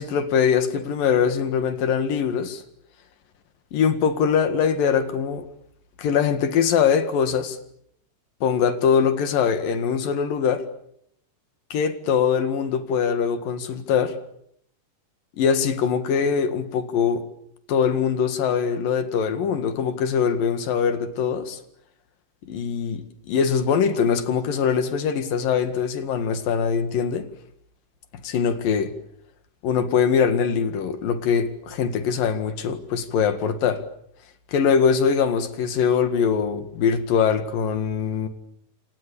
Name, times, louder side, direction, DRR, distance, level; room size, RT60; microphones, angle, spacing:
voice 1, 0.0-2.6 3.7-5.5 6.0-7.6 8.4-10.6 11.7-14.2 15.4-17.2 17.7-21.6 22.4-27.3 28.2-28.9 29.6-33.8 34.5-38.3, left 7 dB, 90° left, 3.7 m, -22 dB
28.5 x 27.0 x 7.1 m
omnidirectional pair, 3.9 m